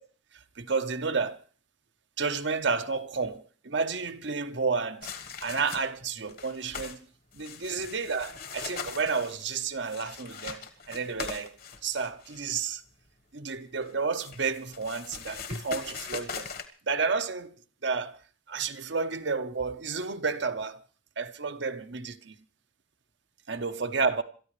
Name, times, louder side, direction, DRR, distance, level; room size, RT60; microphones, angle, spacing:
voice 1, 0.3-1.4 2.2-5.1 5.4-7.1 7.3-10.6 10.9-11.5 11.8-12.8 13.3-16.5 16.8-17.5 17.8-18.2 18.5-20.8 21.2-22.4 23.5-24.2, right 5 dB, 60° right, 1.0 m, -31 dB
sound 1, 5.0-6.0 6.3-7.0 7.3-12.5 13.8-16.7, left 5 dB, 45° left, 1.4 m, -41 dB
27.0 x 13.5 x 3.3 m
head